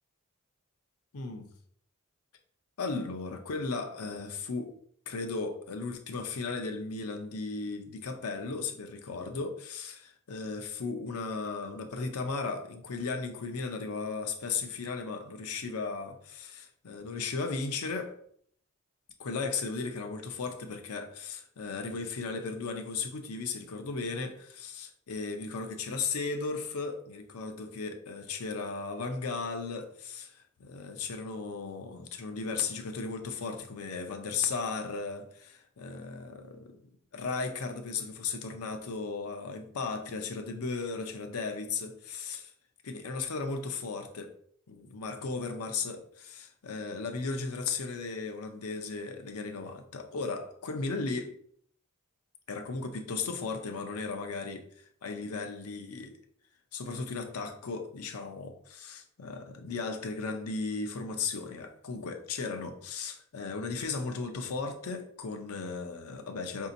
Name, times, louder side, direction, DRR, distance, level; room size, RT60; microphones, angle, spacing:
voice 1, 2.8-4.7 5.1-18.2 19.2-36.8 37.1-42.5 42.8-44.3 44.7-51.4 52.5-54.7 55.0-56.2 56.7-66.7, left 4 dB, 90° left, 0.6 m, -36 dB
5.0 x 2.7 x 2.6 m
head